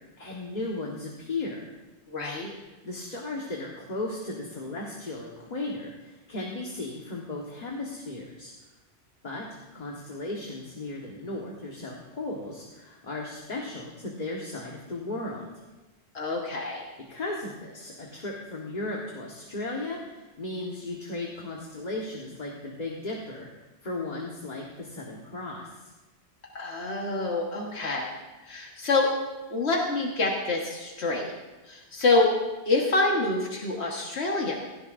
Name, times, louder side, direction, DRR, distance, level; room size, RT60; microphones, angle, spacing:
voice 1, 0.2-1.6 2.8-8.5 9.2-15.5 17.1-23.5 23.8-25.8, left 2 dB, 40° left, -2 dB, 1.6 m, -36 dB
voice 2, 2.1-2.5 16.1-16.8 26.6-28.1 28.4-29.1 29.5-31.3 31.7-32.3 32.7-34.5, left 3 dB, 85° left, -1 dB, 1.7 m, -26 dB
17.0 x 16.5 x 2.6 m, 1.1 s
omnidirectional pair, 1.1 m